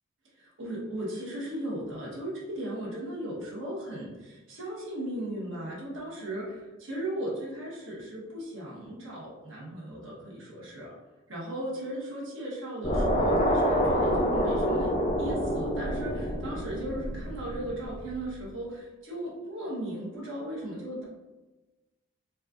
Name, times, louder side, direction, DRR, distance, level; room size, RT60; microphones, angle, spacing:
voice 1, 0.4-10.9 11.3-21.0, right 1 dB, 65° right, -5 dB, 1.1 m, -37 dB
sound 1, 12.8-18.1, equal, 30° left, 0.4 m, -27 dB
4.2 x 2.3 x 2.4 m, 1.1 s
head